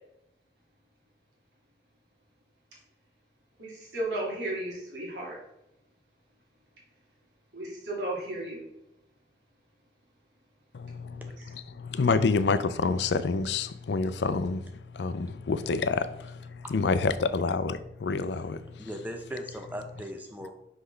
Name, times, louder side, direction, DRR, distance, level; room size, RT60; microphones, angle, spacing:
voice 1, 3.6-5.4 7.5-8.6, right 1 dB, 85° right, 2.1 m, -34 dB
voice 2, 10.7-18.9, left 4 dB, 80° left, 0.4 m, -28 dB
voice 3, 18.4-20.5, equal, 10° right, 0.7 m, -39 dB
5.8 x 5.5 x 3.2 m
head